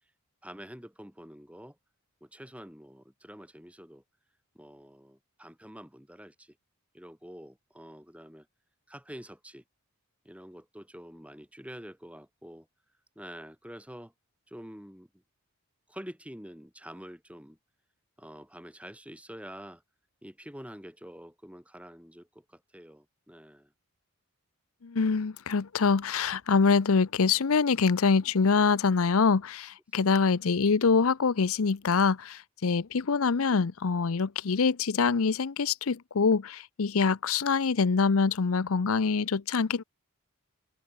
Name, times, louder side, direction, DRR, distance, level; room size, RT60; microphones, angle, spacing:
voice 1, 0.4-1.8 2.2-4.0 4.6-6.5 6.9-8.5 8.9-9.6 10.3-12.7 13.2-14.1 14.5-15.1 15.9-17.6 18.2-19.8 20.2-23.7, equal, 5° right, 6.8 m, -47 dB
voice 2, 24.8-39.8, left 5 dB, 70° left, 0.6 m, -25 dB
head